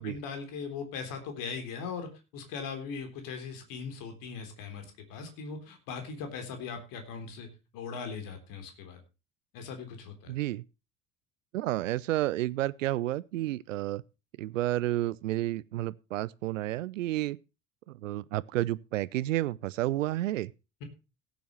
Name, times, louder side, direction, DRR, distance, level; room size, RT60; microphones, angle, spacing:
voice 1, 0.0-7.5 7.7-9.0 9.5-10.3, left 5 dB, 60° left, 3.7 m, -39 dB
voice 2, 10.3-10.6 11.5-14.0 14.4-17.4 17.9-20.5, right 15 dB, 75° right, 0.7 m, -31 dB
16.5 x 9.3 x 3.1 m
figure-of-eight pair, 60°, 39 cm